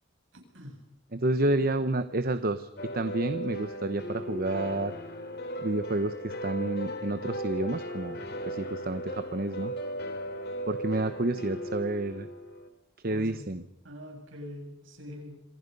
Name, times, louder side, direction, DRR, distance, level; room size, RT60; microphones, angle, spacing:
voice 1, 0.3-0.8 13.1-13.5 13.8-15.4, left 1 dB, 65° right, 3 dB, 7.5 m, -44 dB
voice 2, 1.1-5.0 5.6-9.7 10.7-12.3 13.0-13.6, right 2 dB, 45° right, 10 dB, 1.0 m, -30 dB
sound 1, 2.8-12.7, equal, 50° left, 3.3 m, -37 dB
27.5 x 25.5 x 5.5 m, 0.86 s
head